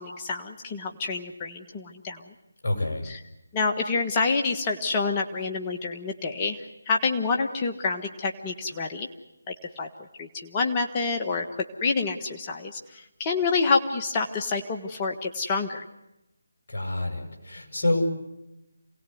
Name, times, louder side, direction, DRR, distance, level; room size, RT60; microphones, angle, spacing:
voice 1, 0.0-2.2 3.0-3.2 3.5-9.1 9.5-9.9 10.2-15.8, left 4 dB, 20° left, 3 dB, 1.5 m, -28 dB
voice 2, 2.6-3.0 16.7-18.1, left 1 dB, 45° left, 3 dB, 7.8 m, -27 dB
27.0 x 19.0 x 9.6 m, 0.92 s
figure-of-eight pair, 155°, 0 cm